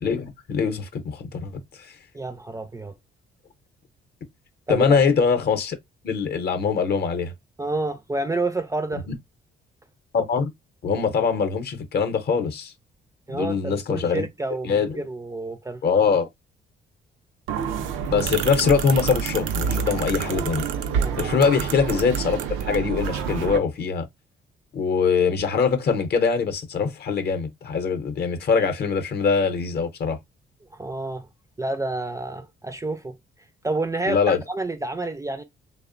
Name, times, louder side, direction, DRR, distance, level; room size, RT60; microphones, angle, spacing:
voice 1, 0.0-1.5 1.8-1.9 4.7-5.8 6.0-7.3 10.1-10.5 10.8-12.7 13.3-14.2 14.6-14.9 15.8-16.3 18.1-20.6 21.2-24.1 24.7-30.2 34.1-34.4, left 5 dB, 55° left, 0.6 m, -23 dB
voice 2, 2.1-2.9 4.7-5.0 7.6-9.0 13.3-15.8 20.9-21.3 30.7-31.3 31.6-33.2 33.6-35.4, right 2 dB, 15° right, 0.3 m, -29 dB
sound 1, 17.5-23.6, right 7 dB, 85° right, 0.4 m, -27 dB
2.8 x 2.0 x 2.4 m
cardioid pair, 90°, 20 cm